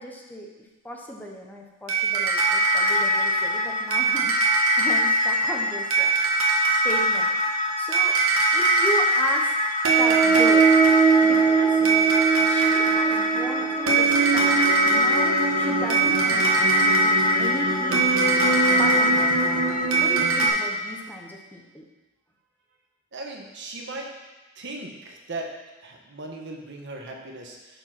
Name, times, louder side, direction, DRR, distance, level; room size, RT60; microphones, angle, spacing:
voice 1, 0.0-6.1 6.4-8.2 8.5-9.5 10.0-10.7 11.2-11.9 12.4-18.1 18.7-19.4 20.0-21.8, equal, 10° left, 0 dB, 0.7 m, -36 dB
sound 1, 1.9-20.5, right 3 dB, 85° right, 1.3 m, -20 dB
voice 2, 23.1-24.1 24.6-25.5 25.8-27.8, right 2 dB, 60° right, 1 dB, 1.1 m, -37 dB
6.8 x 4.4 x 5.9 m, 1.1 s
head